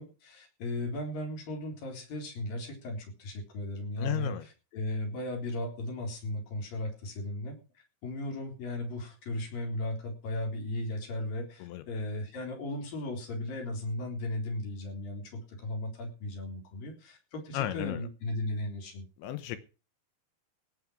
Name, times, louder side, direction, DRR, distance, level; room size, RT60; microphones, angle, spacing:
voice 1, 0.0-4.3 4.7-7.6 8.0-19.0, left 1 dB, 50° left, 3 dB, 5.3 m, -36 dB
voice 2, 4.0-4.5 11.6-11.8 17.5-18.1 19.2-19.6, left 13 dB, 80° left, 12 dB, 3.4 m, -34 dB
17.5 x 7.9 x 6.2 m, 0.33 s
omnidirectional pair, 5.3 m